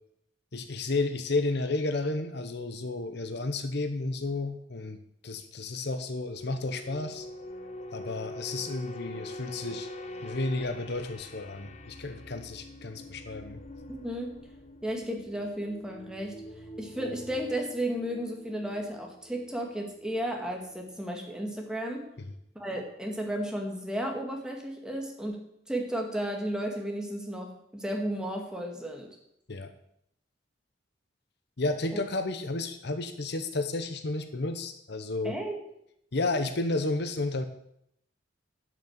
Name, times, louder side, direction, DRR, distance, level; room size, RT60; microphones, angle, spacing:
voice 1, 0.5-5.0 5.2-7.3 7.9-9.9 10.2-13.6 29.5-29.7 31.6-35.4 36.1-37.4, left 2 dB, 60° left, 8 dB, 0.9 m, -32 dB
sound 1, 6.4-21.0 21.3-21.6, left 1 dB, 35° left, 1.1 m, -45 dB
voice 2, 13.9-14.4 14.8-16.3 16.8-22.1 22.6-25.4 25.7-29.1 31.9-32.0 35.2-35.6, right 1 dB, 5° right, 1 dB, 1.9 m, -33 dB
11.0 x 6.3 x 7.9 m, 0.75 s
head